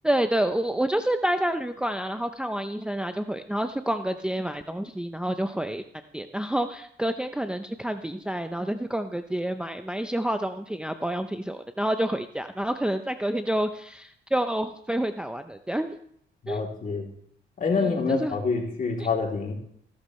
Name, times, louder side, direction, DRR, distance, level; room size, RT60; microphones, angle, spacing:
voice 1, 0.0-5.8 6.1-16.0 16.5-16.6 17.7-18.4 19.0-19.1, right 1 dB, 5° right, 7 dB, 0.7 m, -28 dB
voice 2, 16.4-17.1 17.6-19.5, left 4 dB, 40° left, 0 dB, 3.2 m, -27 dB
15.5 x 11.5 x 3.2 m, 0.68 s
cardioid pair, 90°, 20 cm